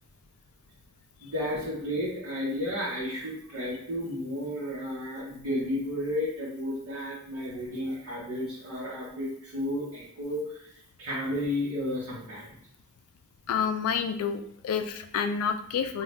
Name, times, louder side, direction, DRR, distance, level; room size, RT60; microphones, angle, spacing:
voice 1, 1.2-12.6, left 1 dB, 85° right, -7 dB, 0.9 m, -32 dB
voice 2, 13.5-16.0, left 6 dB, 80° left, 8 dB, 0.3 m, -29 dB
2.7 x 2.3 x 3.2 m, 0.69 s
head